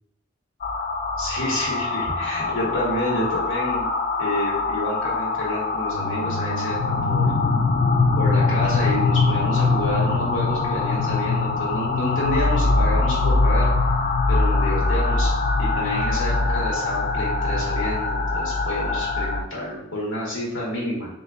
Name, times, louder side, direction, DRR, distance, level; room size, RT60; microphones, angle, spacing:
sound 1, 0.6-19.4, left 3 dB, 45° left, 0.4 m, -22 dB
voice 1, 1.2-3.9 4.2-6.8 7.0-7.3 8.2-13.9 14.3-15.3 15.6-21.1, left 1 dB, 65° left, -4 dB, 1.5 m, -29 dB
3.4 x 2.7 x 3.6 m, 0.89 s
head